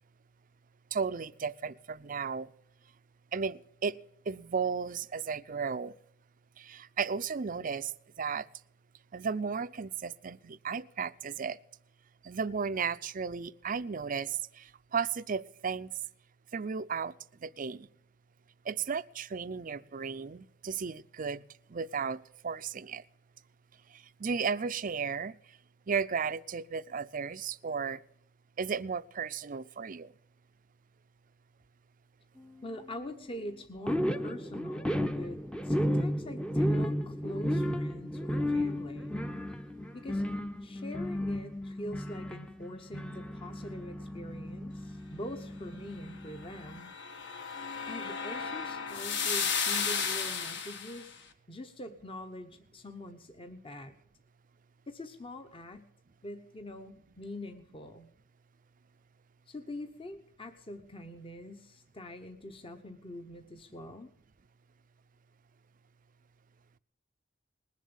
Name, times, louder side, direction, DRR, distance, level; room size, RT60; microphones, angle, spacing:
voice 1, 0.9-2.5 3.3-4.0 4.3-6.0 6.6-8.5 9.1-11.6 12.2-15.9 16.5-17.1 17.4-17.9 18.6-21.4 21.7-23.0 23.9-25.4 25.9-28.0 28.6-30.1, right 6 dB, 45° right, 15 dB, 0.5 m, -34 dB
voice 2, 32.6-35.4 35.6-39.2 39.9-40.2 40.6-46.9 47.8-54.0 54.9-55.9 56.2-58.1 59.5-64.1, left 1 dB, 30° left, 6 dB, 1.0 m, -44 dB
sound 1, 33.9-46.8, equal, 5° left, 0.7 m, -33 dB
sound 2, 46.4-51.1, left 6 dB, 60° left, 1.5 m, -34 dB
20.0 x 7.4 x 7.0 m, 0.72 s
head